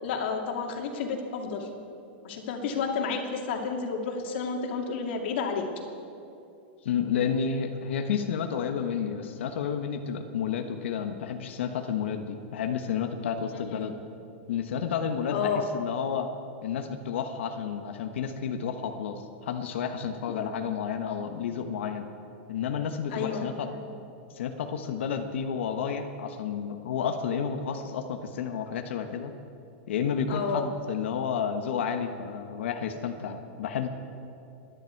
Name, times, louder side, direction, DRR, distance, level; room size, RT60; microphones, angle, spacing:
voice 1, 0.0-1.7 2.2-5.6 13.7-13.8 15.3-15.6 20.3-20.7 23.1-23.9 30.3-30.7, left 5 dB, 65° left, 2 dB, 2.4 m, -31 dB
voice 2, 6.8-13.9 14.5-16.3 16.6-22.0 22.5-23.7 24.4-29.3 29.9-33.9, left 7 dB, 90° left, 6 dB, 1.2 m, -31 dB
28.0 x 10.5 x 4.7 m, 2.7 s
supercardioid pair, 155°, 6 cm